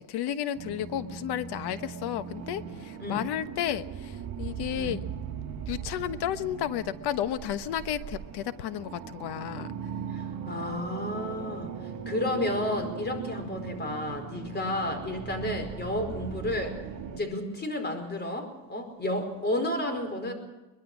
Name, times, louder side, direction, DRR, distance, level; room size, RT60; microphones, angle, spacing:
voice 1, 0.0-5.0 5.7-9.7, left 11 dB, 65° left, 12 dB, 1.3 m, -32 dB
sound 1, 0.5-17.2, right 7 dB, 40° right, 3.6 m, -39 dB
voice 2, 10.1-11.7 12.0-16.8 17.1-20.3, left 1 dB, 25° left, 7 dB, 4.9 m, -31 dB
23.0 x 21.0 x 6.2 m, 1.1 s
cardioid pair, 140°, 43 cm